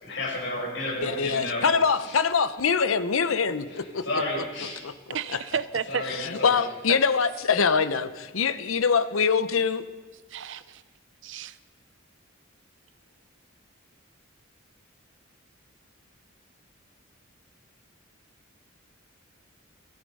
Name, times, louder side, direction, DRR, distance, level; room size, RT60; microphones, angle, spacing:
voice 1, 0.0-1.7 2.0-2.2 3.7-4.8 5.9-6.6, left 1 dB, 65° left, -4 dB, 6.4 m, -32 dB
voice 2, 1.0-4.2 4.8-4.9 5.3-5.4 6.2-9.8, left 5 dB, 85° left, 12 dB, 0.7 m, -24 dB
voice 3, 5.1-6.0 6.9-7.0 10.3-10.8 11.2-11.6, right 6 dB, 65° right, 15 dB, 0.6 m, -31 dB
17.5 x 13.5 x 5.4 m, 1.3 s
head